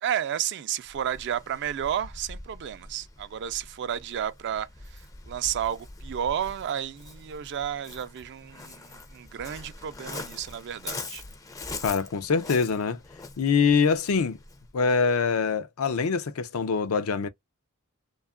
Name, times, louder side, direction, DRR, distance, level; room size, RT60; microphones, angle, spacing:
voice 1, 0.0-11.2, right 9 dB, 55° right, 0.4 m, -32 dB
Waves surf, 0.8-14.7, left 3 dB, 15° left, 0.4 m, -43 dB
voice 2, 11.8-13.0 13.4-14.4 14.7-17.3, left 5 dB, 70° left, 0.5 m, -24 dB
2.8 x 2.3 x 2.3 m
head